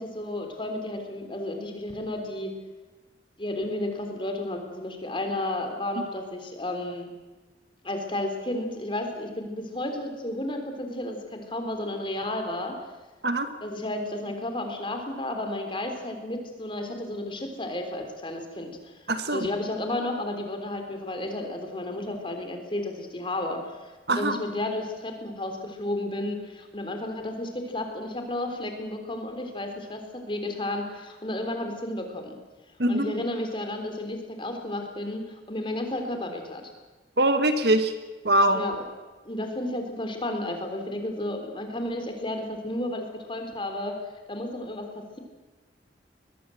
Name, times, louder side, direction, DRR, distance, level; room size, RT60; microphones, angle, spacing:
voice 1, 0.0-2.5 3.4-7.1 7.8-12.8 13.6-18.8 19.3-32.4 32.9-36.6 38.5-38.9 39.3-44.0 44.3-45.2, left 1 dB, 30° left, 4 dB, 3.7 m, -32 dB
voice 2, 19.1-19.5 24.1-24.4 32.8-33.1 37.2-37.9 38.2-38.6, right 1 dB, 65° right, 8 dB, 1.9 m, -22 dB
22.0 x 20.5 x 7.9 m, 1.2 s
head